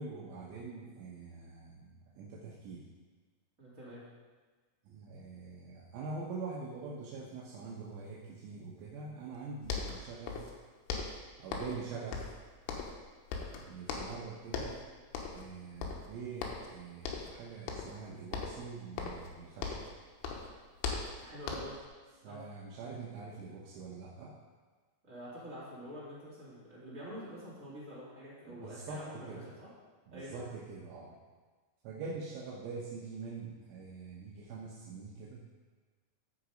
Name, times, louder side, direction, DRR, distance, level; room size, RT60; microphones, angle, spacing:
voice 1, 0.0-2.9 4.8-10.5 11.4-12.3 13.7-14.8 15.3-19.8 22.2-24.3 28.5-29.4 30.1-31.2 31.8-35.4, right 4 dB, 75° right, -4 dB, 3.3 m, -44 dB
voice 2, 3.6-4.0 21.2-21.8 22.2-22.4 25.0-29.7 30.1-30.5, equal, 20° right, -9 dB, 2.1 m, -47 dB
sound 1, 9.4-9.5 9.6-10.6 10.9-11.8 12.1-13.1 13.3-14.2 14.5-14.8 15.1-15.5 15.8-16.7 17.0-17.4 17.7-18.0 18.3-20.0 20.2-21.9, left 5 dB, 75° left, 3.2 m, -39 dB
13.5 x 5.2 x 5.1 m, 1.4 s
omnidirectional pair, 5.9 m